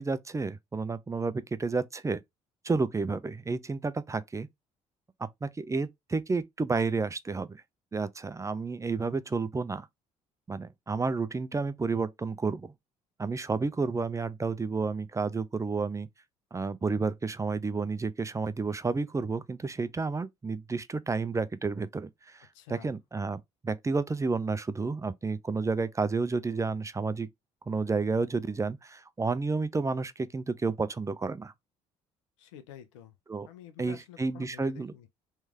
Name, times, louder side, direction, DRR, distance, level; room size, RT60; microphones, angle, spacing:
voice 1, 0.0-2.2 2.6-4.5 5.4-7.6 7.9-9.9 10.5-12.7 13.2-16.1 16.5-27.3 27.7-31.5 33.3-33.5 33.8-34.9, right 4 dB, 20° right, 0.5 m, -31 dB
voice 2, 22.5-22.9 32.4-33.1 33.5-35.1, left 10 dB, 90° left, 0.6 m, -49 dB
3.3 x 3.1 x 3.5 m
hypercardioid pair, 60°, 15 cm